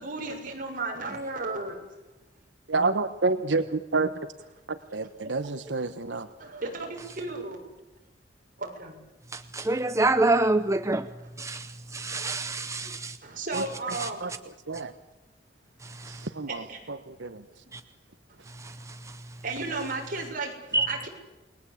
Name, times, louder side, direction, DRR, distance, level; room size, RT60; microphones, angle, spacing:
voice 1, 0.0-1.8 6.4-7.6 8.6-8.9 13.2-14.4 16.5-16.8 19.4-20.5 20.9-21.1, right 3 dB, 50° right, 1 dB, 6.9 m, -34 dB
voice 2, 2.7-4.1 4.7-6.3 13.5-13.6 14.2-14.3 14.7-14.9 16.0-17.4, right 3 dB, 85° right, 10 dB, 1.3 m, -29 dB
voice 3, 9.3-11.0 11.4-11.7 11.9-13.2 16.0-16.1 17.7-17.8 20.7-21.0, right 2 dB, 15° right, 10 dB, 0.8 m, -26 dB
29.0 x 21.0 x 8.6 m, 1.1 s
head